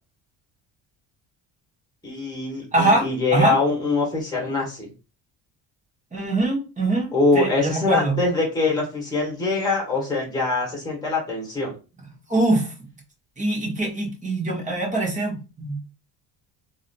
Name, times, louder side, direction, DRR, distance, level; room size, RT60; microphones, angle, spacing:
voice 1, 2.0-4.9 7.1-11.7, left 3 dB, 10° left, -1 dB, 1.6 m, -23 dB
voice 2, 2.7-3.6 6.1-8.2 12.3-12.7 13.4-15.8, right 2 dB, 15° right, -2 dB, 1.4 m, -23 dB
3.7 x 2.8 x 2.2 m, 0.32 s
cardioid pair, 100°, 47 cm